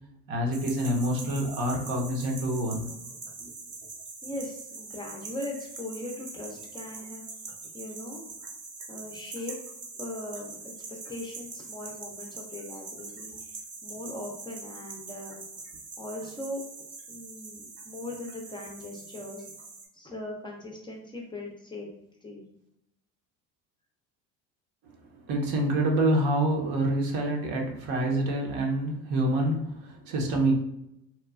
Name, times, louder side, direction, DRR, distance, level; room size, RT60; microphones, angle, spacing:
voice 1, 0.3-2.9 24.9-25.0 25.3-30.5, right 1 dB, 75° right, 0 dB, 0.8 m, -27 dB
sound 1, 0.5-19.9, right 3 dB, 30° right, 0.6 m, -43 dB
voice 2, 4.2-7.2 7.7-8.2 8.9-9.6 10.0-10.7 11.1-15.4 16.0-16.6 17.1-19.5 19.9-21.9 22.2-22.4, left 1 dB, 15° left, -1 dB, 0.4 m, -39 dB
2.9 x 2.2 x 2.3 m, 0.82 s
supercardioid pair, 105°, 36 cm